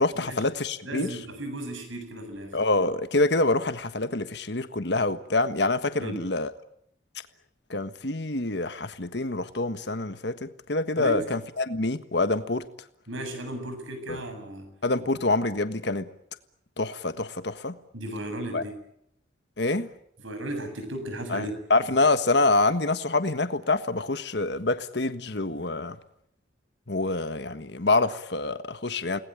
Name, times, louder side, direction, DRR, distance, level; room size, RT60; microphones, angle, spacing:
voice 1, 0.0-1.1 2.5-6.5 7.7-12.7 14.1-14.2 14.8-16.1 16.8-17.8 18.5-18.6 19.6-19.9 21.3-26.0 26.9-29.2, left 2 dB, 60° left, 1.5 m, -26 dB
voice 2, 0.8-2.6 6.0-6.2 11.0-11.3 13.1-14.7 17.9-18.8 20.2-21.6, right 1 dB, 85° right, 7.5 m, -35 dB
29.5 x 20.0 x 9.1 m
head